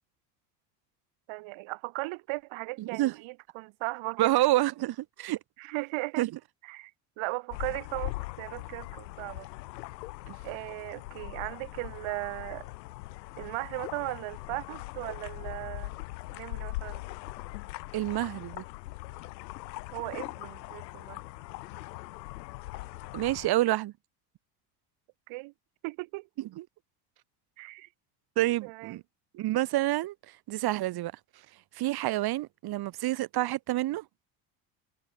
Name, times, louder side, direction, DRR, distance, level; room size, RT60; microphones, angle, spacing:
voice 1, 1.3-4.4 5.6-6.2 6.6-9.5 10.4-12.7 13.4-15.9 16.3-17.0 19.9-21.2 25.3-25.5 25.8-26.3 27.6-27.9 28.6-29.0, right 24 dB, 70° right, 2.9 m, -37 dB
voice 2, 2.8-3.1 4.2-5.4 6.2-6.3 10.3-10.4 17.9-18.6 23.1-23.9 26.6-26.7 28.4-29.0 29.3-31.1 31.7-34.0, right 16 dB, 50° right, 1.2 m, -28 dB
sound 1, 7.5-23.5, left 20 dB, 85° left, 3.7 m, -41 dB
supercardioid pair, 85°, 49 cm